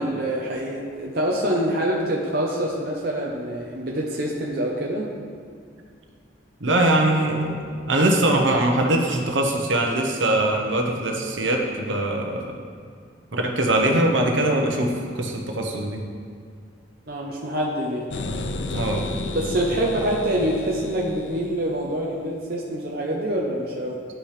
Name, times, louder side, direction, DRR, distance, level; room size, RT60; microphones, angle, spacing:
voice 1, 0.0-5.1 17.1-18.1 19.3-24.0, right 1 dB, 50° right, -3 dB, 0.8 m, -25 dB
voice 2, 6.6-12.5 13.3-16.0 18.7-19.0, right 1 dB, 75° right, 1 dB, 1.0 m, -22 dB
sound 1, 18.1-21.9, left 2 dB, 70° left, 0.6 m, -32 dB
11.0 x 6.0 x 3.4 m, 2.2 s
head